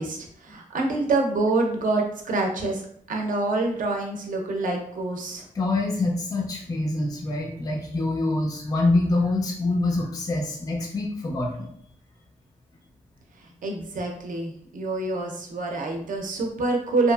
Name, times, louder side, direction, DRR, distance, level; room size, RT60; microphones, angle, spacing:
voice 1, 0.0-5.4 13.6-17.1, right 2 dB, 65° right, 2 dB, 0.5 m, -26 dB
voice 2, 5.5-11.7, left 2 dB, 25° left, 0 dB, 0.3 m, -25 dB
2.8 x 2.4 x 2.2 m, 0.66 s
wide cardioid pair, 165°, 14 cm